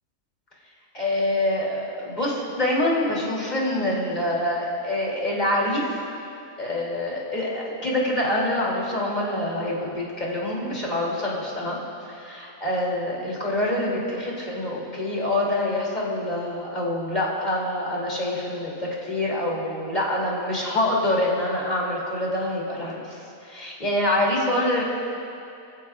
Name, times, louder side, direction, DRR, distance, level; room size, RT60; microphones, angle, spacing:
voice 1, 0.9-5.9 6.6-11.8 12.0-24.8, left 1 dB, 30° left, -4 dB, 3.0 m, -26 dB
25.5 x 14.5 x 2.4 m, 2.6 s
omnidirectional pair, 1.6 m